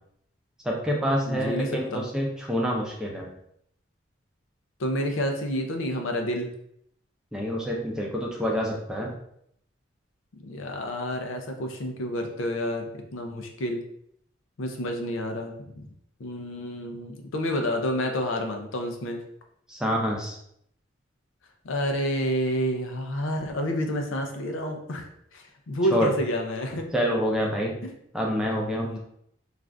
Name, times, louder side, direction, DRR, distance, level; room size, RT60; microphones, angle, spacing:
voice 1, 0.6-3.3 7.3-9.1 19.7-20.4 25.9-26.1 26.9-27.7 28.1-29.0, equal, 5° right, -2 dB, 0.5 m, -27 dB
voice 2, 1.3-2.0 4.8-6.5 10.3-13.8 14.6-15.9 16.2-19.2 21.6-25.0 25.3-26.9 27.8-27.9 28.5-29.0, equal, 85° left, 4 dB, 0.5 m, -29 dB
2.5 x 2.4 x 3.3 m, 0.70 s
head